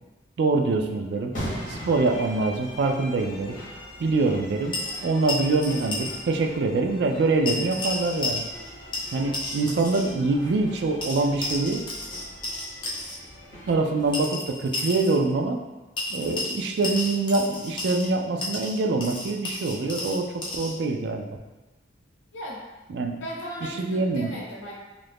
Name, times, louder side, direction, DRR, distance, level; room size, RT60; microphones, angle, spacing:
voice 1, 0.4-1.3 1.7-3.6 4.0-4.8 5.0-8.4 9.1-11.8 13.7-15.6 16.1-21.3 22.9-23.2 23.8-24.3, right 3 dB, 60° right, 3 dB, 0.3 m, -24 dB
sound 1, 1.3-14.2, equal, 45° left, 1.2 m, -41 dB
sound 2, 4.7-6.2 6.5-6.6 7.5-8.7 8.9-10.1 11.0-13.2 14.1-15.2 16.0-18.1 18.4-20.7, left 2 dB, 25° left, 0.5 m, -32 dB
voice 2, 22.3-22.7 23.2-24.8, equal, 85° left, -3 dB, 0.8 m, -36 dB
2.7 x 2.5 x 3.4 m, 1.1 s
head